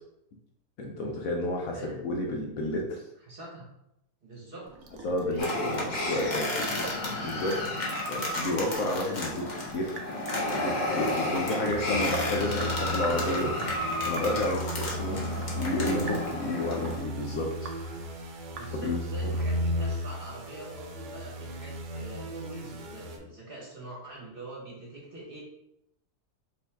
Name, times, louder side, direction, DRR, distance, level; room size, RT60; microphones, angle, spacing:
voice 1, 0.8-3.0 5.0-6.9 7.1-9.9 10.5-13.5 14.1-15.2 15.5-18.1 18.8-19.3, left 1 dB, 65° left, 0 dB, 1.0 m, -31 dB
voice 2, 3.3-3.7 4.2-4.7 5.2-6.6 11.4-12.0 15.0-15.2 18.5-25.4, right 2 dB, 40° right, -4 dB, 1.1 m, -44 dB
Sink (filling or washing) / Drip, 4.6-19.1, right 4 dB, 65° right, 0.8 m, -45 dB
sound 1, 5.4-17.0, left 1 dB, 35° left, 0.8 m, -32 dB
sound 2, 11.7-23.2, equal, 80° right, 1.3 m, -35 dB
5.3 x 2.7 x 3.5 m, 0.82 s
omnidirectional pair, 1.8 m